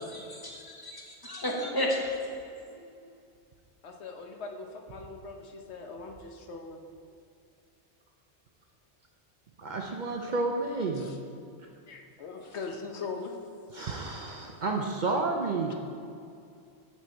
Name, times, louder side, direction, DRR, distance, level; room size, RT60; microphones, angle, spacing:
voice 1, 0.0-2.4, left 1 dB, 20° left, -1 dB, 1.0 m, -33 dB
voice 2, 3.8-6.8 10.9-11.2 11.9-13.4 13.8-14.1, left 4 dB, 75° left, 3 dB, 1.1 m, -41 dB
voice 3, 9.6-11.1 13.7-15.7, right 3 dB, 50° right, 1 dB, 0.6 m, -30 dB
8.2 x 6.1 x 4.5 m, 2.4 s
omnidirectional pair, 1.2 m